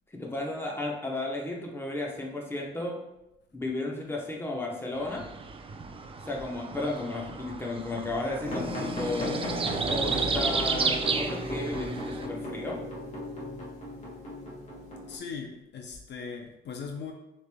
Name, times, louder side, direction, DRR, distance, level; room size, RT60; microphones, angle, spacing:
voice 1, 0.1-3.0 3.5-5.3 6.3-9.4 9.9-12.8, left 2 dB, 10° left, -1 dB, 0.9 m, -33 dB
sound 1, 4.9-12.3, right 4 dB, 30° right, 0.4 m, -32 dB
sound 2, 8.4-15.2, left 1 dB, 35° left, 1.4 m, -36 dB
voice 2, 15.0-17.1, left 5 dB, 60° left, 3 dB, 0.6 m, -39 dB
6.2 x 3.3 x 2.2 m, 0.92 s
cardioid pair, 90°, 20 cm